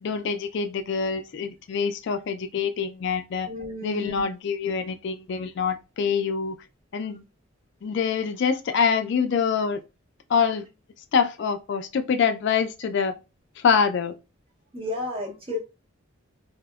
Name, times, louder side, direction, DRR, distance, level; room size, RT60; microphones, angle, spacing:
voice 1, 0.0-3.5 3.8-6.6 6.9-7.2 7.8-9.8 10.3-10.7 11.1-13.2 13.6-14.1, left 6 dB, 55° left, 0.3 m, -25 dB
voice 2, 3.5-4.1 14.7-15.6, left 2 dB, 25° right, 0.7 m, -32 dB
3.5 x 2.0 x 2.3 m
head